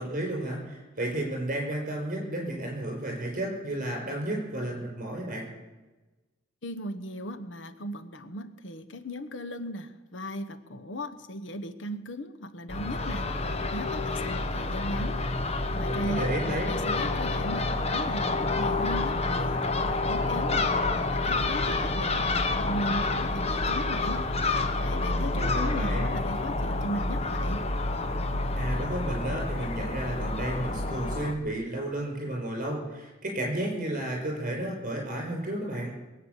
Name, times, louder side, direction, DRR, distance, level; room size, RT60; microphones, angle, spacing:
voice 1, 0.0-5.5 15.9-16.7 25.3-26.1 28.6-35.9, right 1 dB, 45° right, 0 dB, 6.4 m, -32 dB
voice 2, 6.6-13.3 13.7-15.2 15.7-20.7 21.1-24.2 24.8-27.7, equal, 85° left, 10 dB, 1.1 m, -37 dB
Crow / Gull seagull, 12.7-31.3, left 2 dB, 35° left, 1.0 m, -28 dB
21.5 x 8.9 x 7.1 m, 1.2 s
head